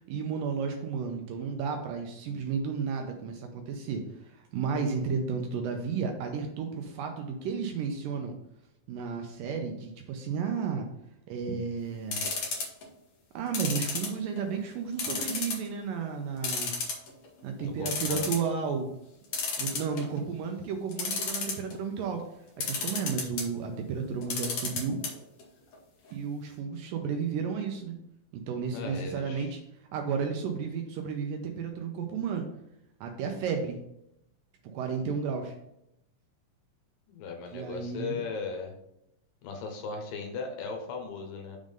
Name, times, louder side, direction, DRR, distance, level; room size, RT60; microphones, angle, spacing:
voice 1, 0.1-8.3 8.9-10.9 11.3-12.3 13.3-16.7 17.4-18.9 19.6-22.3 22.7-25.0 26.1-27.9 28.3-29.6 29.9-32.5 33.0-33.8 34.6-35.6 37.5-38.2, right 6 dB, 80° right, 4 dB, 2.2 m, -33 dB
sound 1, 12.1-12.8 13.5-14.5 15.0-15.7 16.0-16.1 16.4-17.3 17.6-17.7 17.9-18.5 19.3-20.2 20.9-21.7 22.6-23.5 24.2-25.1 25.4-25.5 25.7-25.8, left 4 dB, 60° left, 1.6 m, -31 dB
voice 2, 17.6-18.3 28.7-29.5 37.1-38.7 39.4-41.6, left 4 dB, 75° left, 3 dB, 2.7 m, -37 dB
6.2 x 3.7 x 5.1 m, 0.80 s
omnidirectional pair, 4.1 m